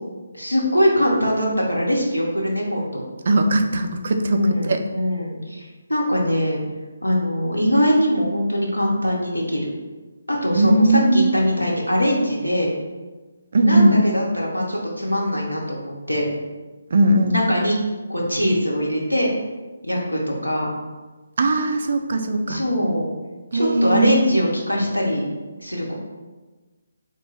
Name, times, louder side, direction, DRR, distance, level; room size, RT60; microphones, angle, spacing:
voice 1, 0.3-3.0 4.3-6.6 7.0-9.7 10.3-12.7 13.6-16.3 17.3-17.8 18.1-19.3 19.8-20.7 22.5-23.1 23.5-25.3 25.6-25.9, equal, 90° left, -3 dB, 0.7 m, -22 dB
voice 2, 3.3-4.8 10.6-11.4 13.5-14.0 16.9-17.4 21.4-22.6 23.5-24.2, right 2 dB, 50° right, 6 dB, 0.3 m, -19 dB
3.9 x 2.2 x 3.2 m, 1.3 s
figure-of-eight pair, 145°, 0 cm